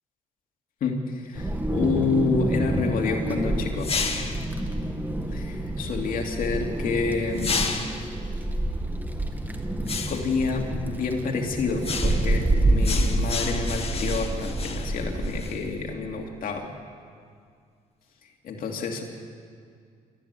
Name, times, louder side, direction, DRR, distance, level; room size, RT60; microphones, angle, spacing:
voice 1, 0.8-3.9 5.3-7.8 10.1-16.6 18.4-19.0, left 4 dB, 65° left, 2 dB, 2.7 m, -28 dB
Wind, 1.3-15.5, right 1 dB, 10° right, 2.1 m, -28 dB
sound 1, 3.8-4.5 7.4-8.1 9.9-10.4 11.8-12.4 12.8-15.6, left 5 dB, 40° left, 2.1 m, -31 dB
27.5 x 13.5 x 8.3 m, 2.2 s
cardioid pair, 90°, 15 cm